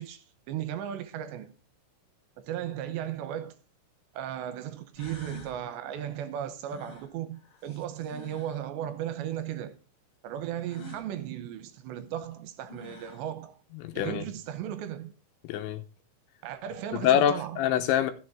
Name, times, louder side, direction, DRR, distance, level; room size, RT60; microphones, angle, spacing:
voice 1, 0.0-1.5 2.4-3.6 4.1-9.8 10.2-13.6 13.9-15.1 16.4-17.7, right 10 dB, 80° right, 3.0 m, -36 dB
sound 1, 3.5-3.6 4.5-4.6 5.0-5.6 6.7-8.6 10.7-11.1 12.3-12.4 12.7-13.3, left 5 dB, 65° left, 1.4 m, -48 dB
voice 2, 13.7-14.2 15.4-15.9 16.9-18.1, left 10 dB, 85° left, 3.3 m, -25 dB
14.5 x 7.1 x 3.7 m
omnidirectional pair, 5.3 m